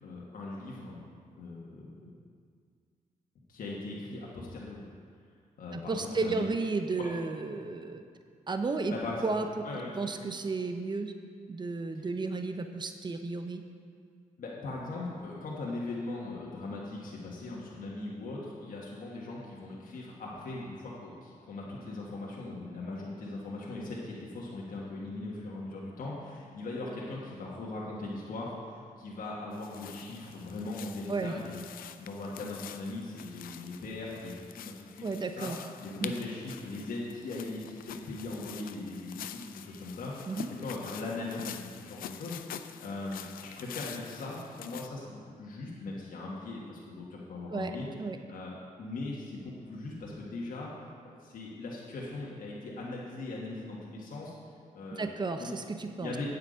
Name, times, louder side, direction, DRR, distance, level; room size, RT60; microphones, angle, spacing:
voice 1, 0.0-1.0 1.4-2.1 3.5-4.8 5.6-6.5 7.0-7.1 8.9-9.2 9.6-10.0 11.9-12.1 14.4-31.6 32.0-35.1 35.4-35.5 35.8-47.9 48.3-48.5 48.8-54.3 54.7-55.1 55.4-55.5 56.0-56.3, left 2 dB, 75° left, -4 dB, 1.5 m, -39 dB
voice 2, 5.7-8.0 8.5-8.9 9.2-9.6 10.0-11.1 11.5-13.6 31.1-31.3 35.0-35.6 36.0-36.1 40.3-40.5 47.5-48.2 54.9-56.1, right 3 dB, 30° right, 6 dB, 0.7 m, -33 dB
sound 1, 29.5-44.9, left 10 dB, 90° left, 0.4 m, -46 dB
8.6 x 8.1 x 5.1 m, 2.1 s
cardioid pair, 65°, 14 cm